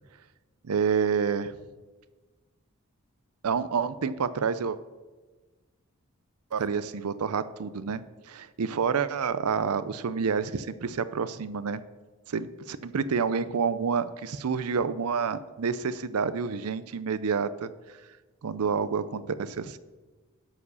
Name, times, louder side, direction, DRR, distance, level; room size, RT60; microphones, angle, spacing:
voice 1, 0.6-1.5 3.4-4.8 6.5-11.8 12.3-17.7 18.4-19.8, right 6 dB, 90° right, 15 dB, 0.5 m, -28 dB
11.0 x 4.8 x 6.9 m, 1.3 s
head